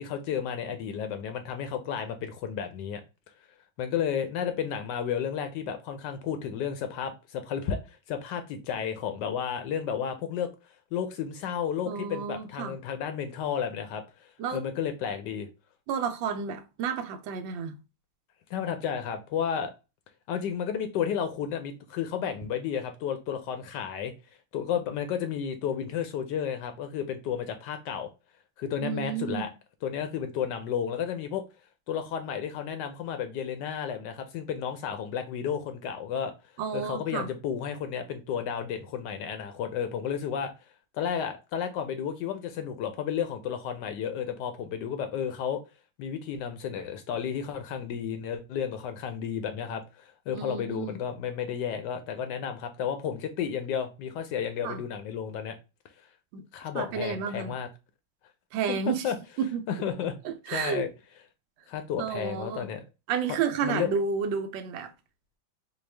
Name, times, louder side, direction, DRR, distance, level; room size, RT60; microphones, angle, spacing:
voice 1, 0.0-3.0 3.8-10.5 10.9-15.5 18.5-19.7 20.3-24.1 24.5-28.1 28.6-29.5 29.8-31.4 31.9-36.3 36.7-40.5 40.9-45.6 46.0-55.6 56.5-57.7 58.7-59.2 59.7-60.1 60.5-60.9 61.7-62.8 63.3-63.4 63.6-63.9, left 8 dB, 75° left, 1.1 m, -32 dB
voice 2, 11.9-12.8 14.4-14.6 15.9-17.7 28.8-29.5 36.6-37.3 50.3-51.0 54.6-54.8 56.3-56.4 56.7-57.5 58.5-59.1 59.4-59.6 60.2-60.8 62.0-62.7 63.1-64.9, right 6 dB, 80° right, 1.3 m, -31 dB
4.4 x 2.3 x 3.2 m
omnidirectional pair, 2.1 m